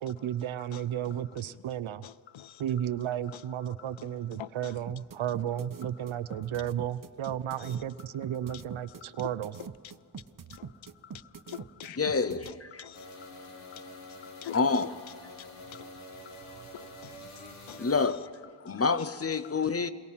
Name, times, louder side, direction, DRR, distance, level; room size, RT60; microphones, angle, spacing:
voice 1, 0.0-2.0 2.6-9.5, right 10 dB, 75° right, 0.7 m, -33 dB
voice 2, 0.6-1.6 2.0-2.9 3.3-4.8 5.8-6.6 7.2-8.1 8.5-9.7 10.5-12.0 12.5-14.6 15.7-16.2 16.7-17.8 18.6-19.1 19.4-19.5, left 11 dB, 70° left, 0.6 m, -49 dB
sound 1, 4.9-12.5, right 6 dB, 40° right, 1.0 m, -44 dB
voice 3, 12.0-12.9 14.5-14.9 17.8-19.9, left 4 dB, 30° left, 0.8 m, -28 dB
sound 2, 12.9-18.1, left 1 dB, 85° left, 2.7 m, -47 dB
27.0 x 22.5 x 5.7 m
wide cardioid pair, 95°, 49 cm